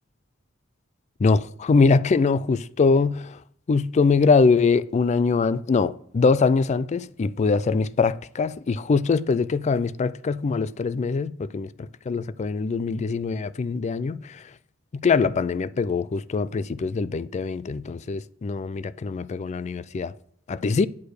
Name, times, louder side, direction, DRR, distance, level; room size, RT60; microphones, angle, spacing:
voice 1, 1.2-3.4 3.7-14.2 14.9-20.1 20.5-20.9, left 4 dB, 35° left, 0.3 m, -23 dB
8.4 x 5.0 x 6.4 m
head